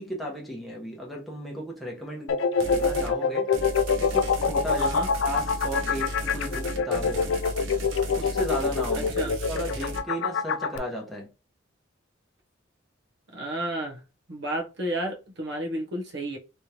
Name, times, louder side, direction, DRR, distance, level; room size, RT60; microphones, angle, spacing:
voice 1, 0.0-3.5 4.0-5.0 5.2-7.3 8.2-11.3, equal, ahead, 0.9 m, -35 dB
sound 1, 2.3-10.8, left 5 dB, 70° left, 0.4 m, -25 dB
sound 2, 2.6-3.1 3.5-10.0, right 1 dB, 85° right, 0.9 m, -35 dB
voice 2, 4.8-5.1 8.9-9.3 13.3-14.0 14.3-16.4, right 1 dB, 60° right, 1.1 m, -32 dB
3.3 x 3.1 x 2.8 m
head